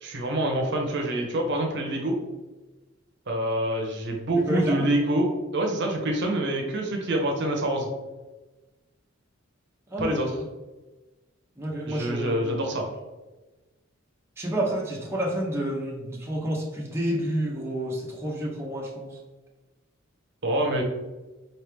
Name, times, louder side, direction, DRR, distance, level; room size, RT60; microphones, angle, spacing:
voice 1, 0.0-2.2 3.3-7.9 10.0-10.4 11.8-12.9 20.4-20.8, right 1 dB, 55° right, 1 dB, 0.8 m, -26 dB
voice 2, 4.5-4.9 9.9-10.4 11.6-12.8 14.4-19.2, right 1 dB, 10° right, -4 dB, 0.8 m, -29 dB
4.6 x 3.2 x 3.3 m, 1.1 s
head